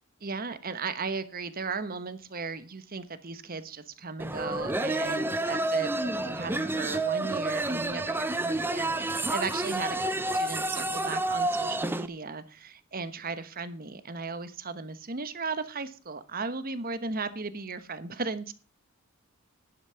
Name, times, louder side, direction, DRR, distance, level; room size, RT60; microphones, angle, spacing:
voice 1, 0.2-18.5, right 4 dB, 40° right, 12 dB, 1.1 m, -36 dB
sound 1, 4.2-12.1, right 2 dB, 10° right, 0.7 m, -29 dB
11.0 x 9.9 x 5.8 m, 0.37 s
head